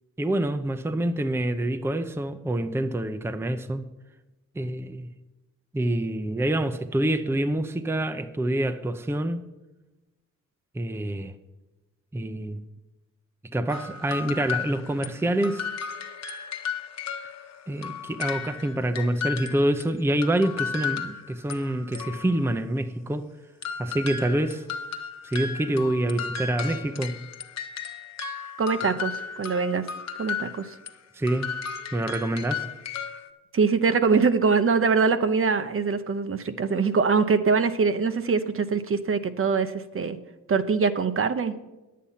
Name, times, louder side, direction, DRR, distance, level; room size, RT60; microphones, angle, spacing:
voice 1, 0.2-3.9 4.6-5.1 5.7-9.5 10.7-11.3 12.1-12.6 13.5-15.7 17.7-23.3 23.8-24.7 25.2-27.2 31.1-31.5 31.9-32.7, right 1 dB, 10° right, 9 dB, 0.6 m, -26 dB
sound 1, 13.7-19.9 20.2-22.6 23.6-31.0 31.3-33.3, left 6 dB, 55° left, 1.1 m, -35 dB
voice 2, 28.6-29.9 30.2-30.8 33.5-40.2 40.5-41.5, right 5 dB, 45° right, 10 dB, 0.8 m, -23 dB
10.5 x 8.5 x 5.6 m, 1.1 s
cardioid pair, 100°, 31 cm